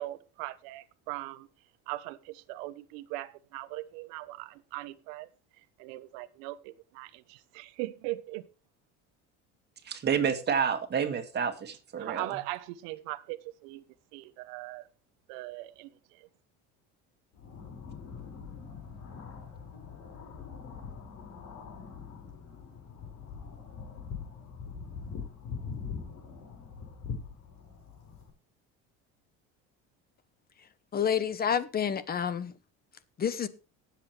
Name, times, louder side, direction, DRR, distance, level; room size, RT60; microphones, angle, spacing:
voice 1, 0.0-1.5 1.9-5.3 5.8-8.5 12.0-13.8 14.1-14.9 15.3-16.3, right 18 dB, 90° right, 1.1 m, -40 dB
voice 2, 9.8-12.4, right 7 dB, 35° right, 2.2 m, -29 dB
sound 1, 17.3-28.3, left 6 dB, 60° left, 5.9 m, -43 dB
voice 3, 30.9-32.5 33.2-33.5, left 8 dB, 30° left, 1.1 m, -29 dB
18.5 x 7.7 x 3.4 m
cardioid pair, 125°, 31 cm